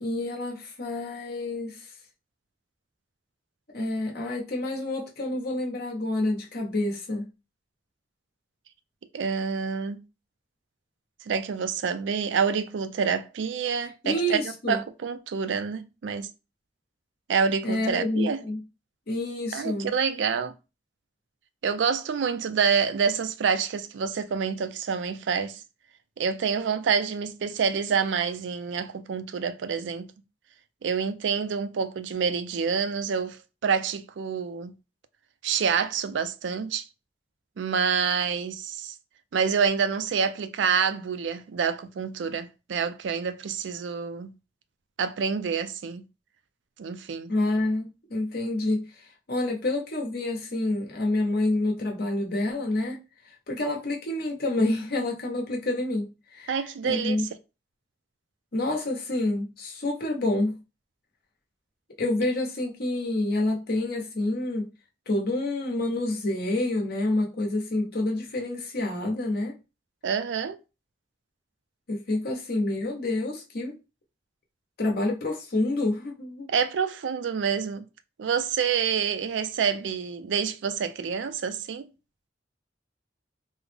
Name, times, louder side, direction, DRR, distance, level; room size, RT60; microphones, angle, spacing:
voice 1, 0.0-1.9 3.7-7.3 14.0-14.8 17.6-18.6 19.1-19.9 47.3-53.0 53.5-56.5 56.8-57.3 58.5-60.6 62.0-64.6 65.1-69.5 71.9-73.7 74.8-76.5, left 2 dB, 60° left, 0.9 m, -28 dB
voice 2, 9.1-10.0 11.3-14.4 14.7-16.3 17.3-18.4 19.5-20.5 21.6-25.6 26.2-30.1 30.8-34.7 35.4-36.8 37.6-38.9 39.3-44.3 45.0-46.0 46.8-47.3 56.5-57.3 70.0-70.6 76.5-77.8 78.2-81.9, right 6 dB, 80° right, 0.4 m, -27 dB
3.5 x 2.1 x 3.3 m
head